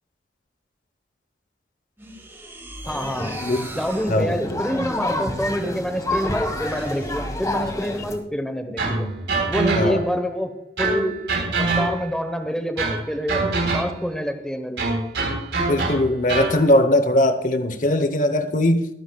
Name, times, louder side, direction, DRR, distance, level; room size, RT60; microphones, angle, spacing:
sound 1, 2.0-7.9 8.8-9.5, right 1 dB, 15° right, 2.0 m, -38 dB
sound 2, 2.8-8.2, left 1 dB, 20° left, 1.5 m, -29 dB
voice 1, 2.9-3.4 3.7-9.1 9.5-10.5 10.8-11.1 11.6-13.4 13.7-14.8, equal, 5° left, 6 dB, 1.0 m, -26 dB
voice 2, 3.4-3.7 4.1-4.4 9.8-10.0 15.7-18.9, left 1 dB, 45° left, 9 dB, 0.9 m, -20 dB
sound 3, 8.8-10.2 10.8-12.2 12.8-14.1 14.8-16.6, right 3 dB, 90° right, 3.8 m, -25 dB
22.5 x 9.8 x 2.3 m, 0.78 s
head